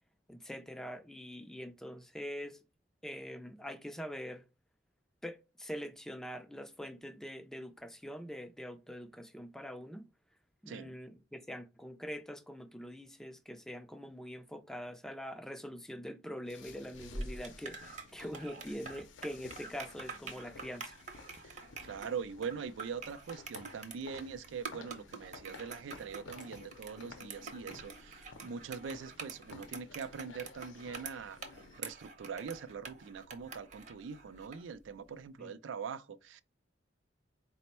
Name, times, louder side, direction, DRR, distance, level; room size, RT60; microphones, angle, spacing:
voice 1, 0.3-2.6 3.0-4.4 5.2-10.1 10.6-20.9 35.4-35.5, equal, 5° left, 0.3 m, -44 dB
sound 1, 16.5-31.8, left 4 dB, 80° left, 0.6 m, -54 dB
sound 2, 16.9-34.7, right 4 dB, 40° right, 0.7 m, -47 dB
voice 2, 21.4-31.4 31.8-36.4, right 6 dB, 85° right, 0.4 m, -43 dB
4.3 x 2.1 x 4.1 m
head